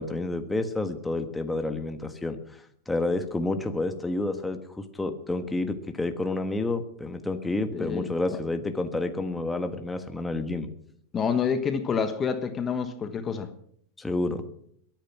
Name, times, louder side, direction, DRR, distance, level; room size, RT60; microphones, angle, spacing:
voice 1, 0.0-2.4 2.9-10.7 14.0-14.4, left 2 dB, 5° left, 1.4 m, -29 dB
voice 2, 7.7-8.1 11.1-13.5, left 6 dB, 20° left, 1.3 m, -28 dB
22.5 x 9.1 x 6.1 m
supercardioid pair, 140°, 0 cm